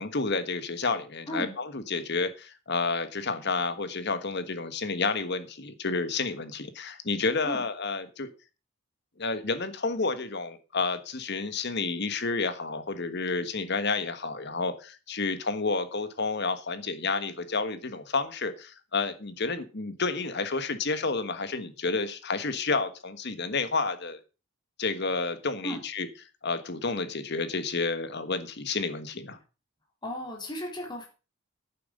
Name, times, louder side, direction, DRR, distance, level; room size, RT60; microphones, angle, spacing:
voice 1, 0.0-8.3 9.2-24.2 24.8-26.1 26.4-29.4, left 4 dB, 50° left, 11 dB, 1.4 m, -30 dB
voice 2, 30.0-31.1, equal, 20° left, 0 dB, 3.9 m, -35 dB
11.0 x 9.0 x 5.2 m, 0.32 s
head